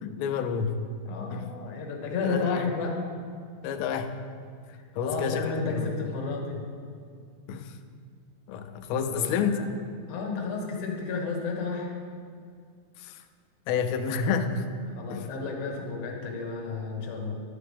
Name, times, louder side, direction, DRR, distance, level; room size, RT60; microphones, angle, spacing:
voice 1, 0.0-0.9 1.3-1.5 2.2-2.7 3.6-4.1 5.0-6.0 7.5-7.8 8.5-9.6 13.0-13.2 13.7-14.7 15.1-15.3, left 6 dB, 90° left, 8 dB, 2.6 m, -29 dB
voice 2, 1.1-3.0 4.7-6.6 9.1-9.6 10.1-11.9 15.0-17.3, left 4 dB, 65° left, 0 dB, 2.3 m, -32 dB
12.0 x 6.8 x 3.5 m, 2.2 s
omnidirectional pair, 4.5 m